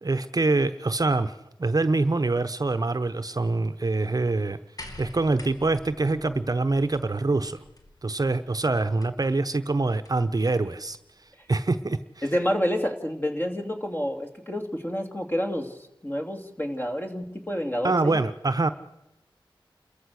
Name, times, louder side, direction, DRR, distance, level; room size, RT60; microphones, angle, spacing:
voice 1, 0.0-4.6 5.0-7.6 8.0-11.0 11.5-12.2 17.8-18.7, right 3 dB, 45° right, 10 dB, 0.9 m, -25 dB
sound 1, 4.8-10.4 11.5-11.6, left 1 dB, 45° left, 2.6 m, -48 dB
voice 2, 12.2-15.8 16.0-18.2, equal, 25° left, 4 dB, 2.8 m, -29 dB
29.5 x 14.0 x 6.5 m, 0.89 s
wide cardioid pair, 65°, 9 cm